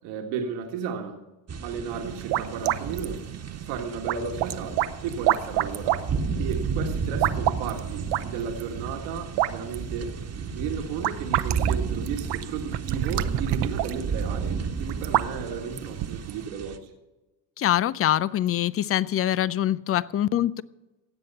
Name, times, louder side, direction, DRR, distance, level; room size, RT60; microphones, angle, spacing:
voice 1, 0.0-1.2 1.6-3.3 3.6-6.1 6.4-10.1 10.5-16.9, right 6 dB, 75° right, 2 dB, 1.9 m, -34 dB
sound 1, 1.5-16.8, right 5 dB, 30° right, 1.3 m, -33 dB
sound 2, 1.9-16.5, right 14 dB, 55° right, 0.8 m, -30 dB
voice 2, 17.6-20.6, left 12 dB, 30° left, 20 dB, 0.4 m, -24 dB
17.0 x 7.8 x 5.6 m, 1.1 s
hypercardioid pair, 70°, 50 cm